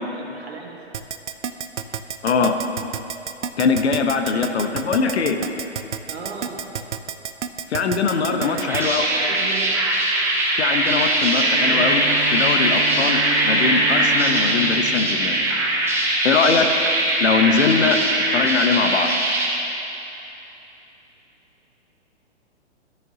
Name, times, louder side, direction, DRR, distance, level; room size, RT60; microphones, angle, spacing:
voice 1, 0.1-0.8 6.1-6.6 8.3-9.9 11.7-12.0, right 4 dB, 65° right, 0 dB, 1.5 m, -35 dB
Keyboard (musical), 0.9-8.8, right 8 dB, 90° right, 0.5 m, -29 dB
voice 2, 2.2-2.6 3.6-5.4 7.7-9.1 10.6-12.0 12.3-15.4 16.2-16.7 17.2-18.0 18.3-19.1, left 5 dB, 70° left, 6 dB, 0.9 m, -21 dB
sound 1, 8.4-19.5, right 1 dB, 5° right, 0.8 m, -21 dB
Bowed string instrument, 10.6-16.1, right 5 dB, 40° left, 1.5 m, -33 dB
13.5 x 6.6 x 2.8 m, 3.0 s
hypercardioid pair, 130°, 35 cm